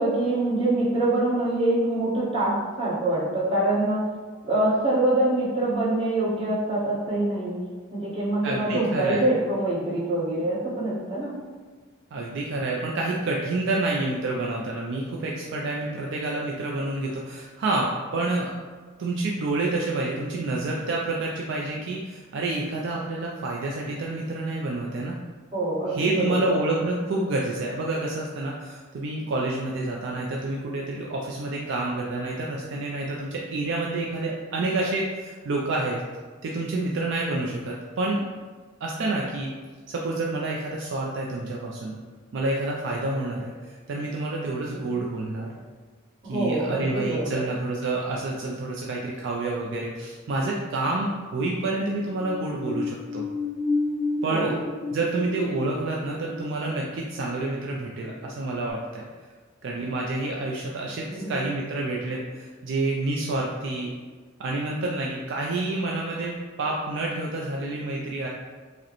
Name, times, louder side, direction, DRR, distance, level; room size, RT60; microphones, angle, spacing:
voice 1, 0.0-4.0 4.4-7.6 7.9-11.4 25.5-26.6 44.7-44.8 46.2-47.3 54.3-54.5 61.1-61.4, right 1 dB, 25° right, -10 dB, 1.4 m, -25 dB
voice 2, 8.4-9.2 12.1-17.9 18.1-18.5 19.0-25.1 25.9-36.0 36.4-38.2 38.8-39.5 39.9-42.0 42.3-45.5 46.2-53.3 54.2-54.5 54.9-59.1 59.6-63.9 64.4-68.3, right 2 dB, 60° right, -2 dB, 0.4 m, -28 dB
sound 1, 52.1-58.3 58.7-58.8, left 2 dB, 35° left, 0.5 m, -32 dB
4.8 x 2.1 x 3.0 m, 1.5 s
head